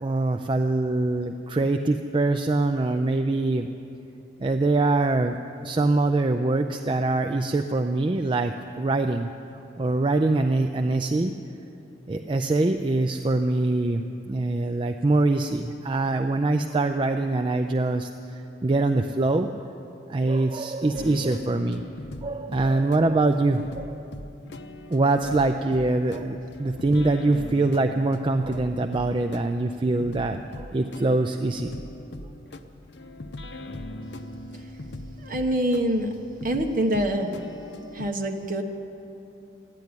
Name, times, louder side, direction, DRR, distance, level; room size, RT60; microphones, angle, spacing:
voice 1, 0.0-3.7 4.4-5.4 5.6-9.3 9.8-11.3 12.1-19.5 20.1-21.8 22.2-24.0 24.9-31.7, right 2 dB, 25° right, 6 dB, 0.4 m, -24 dB
sound 1, 20.9-38.1, left 1 dB, 65° left, 0.7 m, -40 dB
voice 2, 35.2-36.1 36.4-37.4 37.9-38.6, right 1 dB, 45° right, 3 dB, 1.2 m, -25 dB
13.0 x 10.5 x 9.7 m, 2.9 s
head